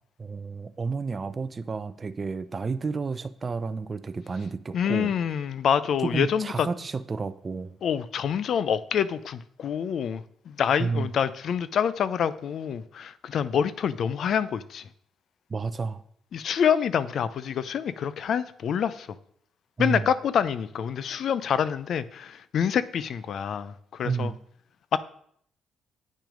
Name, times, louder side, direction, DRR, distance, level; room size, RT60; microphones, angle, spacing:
voice 1, 0.2-5.1 6.0-7.8 10.8-11.1 15.5-16.0 19.8-20.1 24.0-24.4, right 4 dB, 30° right, 11 dB, 0.5 m, -31 dB
voice 2, 4.7-6.7 7.8-14.8 16.3-19.1 19.8-24.3 24.9-25.0, left 8 dB, 65° left, 15 dB, 0.5 m, -26 dB
8.7 x 6.1 x 5.1 m, 0.65 s
cardioid pair, 90°, 0 cm